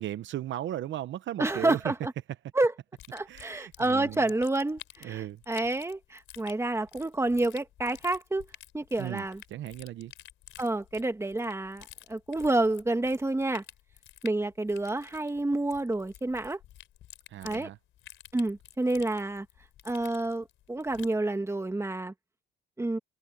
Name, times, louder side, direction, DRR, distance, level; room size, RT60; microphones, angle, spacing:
voice 1, 0.0-1.9 3.3-4.2 5.0-5.4 9.0-10.1 17.3-17.8, right 13 dB, 70° right, 0.8 m, -36 dB
voice 2, 1.4-2.1 2.5-2.7 3.1-8.5 8.7-9.4 10.6-13.6 14.2-16.6 17.4-17.7 18.3-19.5 19.9-22.1 22.8-23.0, right 2 dB, 15° right, 2.0 m, -29 dB
sound 1, 3.0-21.2, left 13 dB, 80° left, 3.8 m, -51 dB
cardioid pair, 90°, 20 cm